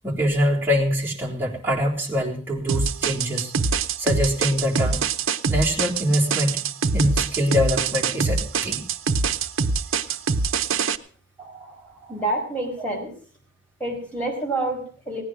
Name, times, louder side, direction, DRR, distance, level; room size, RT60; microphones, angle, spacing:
voice 1, 0.0-3.5 4.0-5.0 5.5-6.6 6.9-8.8 10.1-10.2 11.4-12.1, equal, 10° right, -5 dB, 3.5 m, -24 dB
sound 1, 2.7-11.0, right 5 dB, 80° right, 0.8 m, -24 dB
voice 2, 12.1-13.1 13.8-15.2, right 2 dB, 5° left, -2 dB, 5.2 m, -27 dB
17.5 x 9.7 x 6.1 m, 0.44 s
head